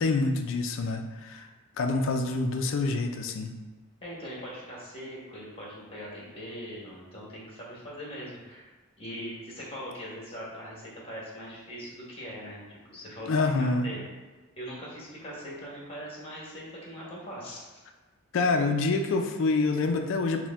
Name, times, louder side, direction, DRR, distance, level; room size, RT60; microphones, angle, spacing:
voice 1, 0.0-1.5 1.8-3.5 13.3-13.9 18.3-20.5, left 3 dB, 60° left, 5 dB, 0.4 m, -26 dB
voice 2, 4.0-8.7 9.0-14.0 14.6-17.8, equal, 25° left, -5 dB, 1.2 m, -41 dB
4.4 x 2.2 x 3.5 m, 1.3 s
head